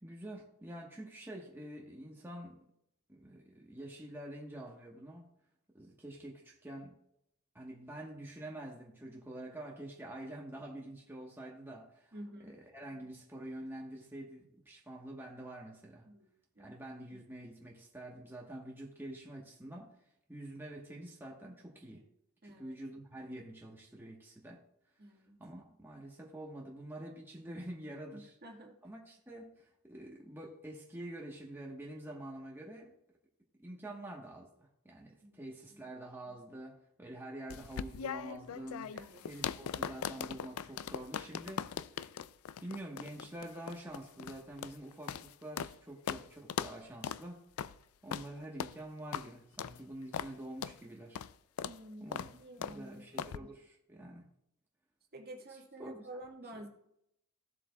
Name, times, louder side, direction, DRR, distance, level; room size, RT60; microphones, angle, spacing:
voice 1, 0.0-2.6 3.1-5.3 5.7-7.0 7.5-12.2 12.4-16.1 16.6-19.9 20.3-22.0 22.4-24.6 25.4-28.4 28.8-32.9 33.6-38.9 39.2-42.0 42.6-47.4 48.0-51.2 52.0-52.3 52.6-54.2 55.5-56.6, right 1 dB, 10° right, -2 dB, 1.2 m, -47 dB
voice 2, 12.1-12.5 16.0-16.3 16.6-16.7 22.4-22.7 25.0-25.4 28.1-28.7 35.2-35.4 35.7-35.8 38.9-39.3 51.6-53.0 53.3-53.5 55.1-56.7, right 1 dB, 45° right, 1 dB, 1.6 m, -50 dB
sound 1, 37.5-45.8 46.1-46.2 46.5-46.8 47.0-47.2 47.6-47.7 48.1-48.3 48.6-48.8 49.1-49.3 49.6-49.8 50.1-50.3 50.6-50.8 51.2-51.3 51.6-51.8 52.1-52.3 52.6-52.8 53.2-53.4, left 8 dB, 85° left, 0.4 m, -39 dB
15.5 x 7.4 x 2.3 m, 0.76 s
head